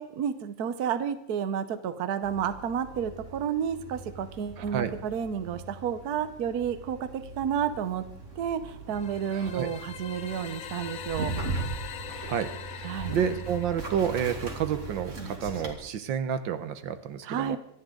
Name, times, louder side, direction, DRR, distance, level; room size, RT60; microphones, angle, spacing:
voice 1, 0.0-8.0 8.4-11.3 12.8-13.2 17.2-17.6, right 8 dB, 60° right, 11 dB, 1.4 m, -31 dB
sound 1, 2.2-15.7, right 3 dB, 40° right, 2.6 m, -39 dB
voice 2, 4.6-4.9 9.3-9.7 12.1-17.6, right 8 dB, 80° right, 11 dB, 1.6 m, -30 dB
sound 2, 8.9-14.8, left 9 dB, 60° left, 1.0 m, -43 dB
26.0 x 11.0 x 3.8 m, 0.77 s
omnidirectional pair, 2.1 m